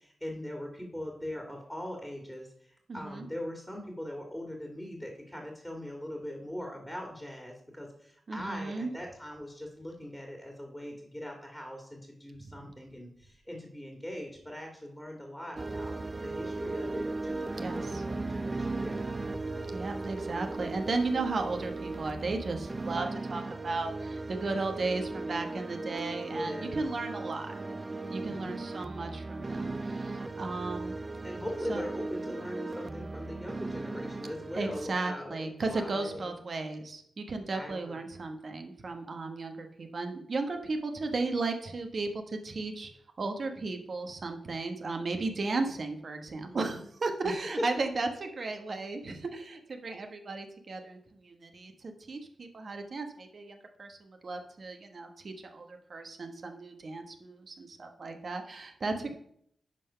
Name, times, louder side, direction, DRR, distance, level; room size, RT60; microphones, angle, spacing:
voice 1, 0.0-19.0 26.3-26.8 28.2-28.5 31.2-36.3 37.5-38.0 46.5-46.8 47.2-47.7 59.0-59.1, left 1 dB, ahead, 1 dB, 2.0 m, -41 dB
voice 2, 2.9-3.2 8.3-8.9 17.6-18.0 19.7-27.5 28.1-31.0 31.7-31.8 34.6-42.9 43.2-59.1, right 3 dB, 60° right, 5 dB, 1.1 m, -35 dB
sound 1, 15.6-34.9, right 3 dB, 35° right, 0.4 m, -37 dB
10.5 x 3.8 x 5.6 m, 0.69 s
cardioid pair, 55°, 0 cm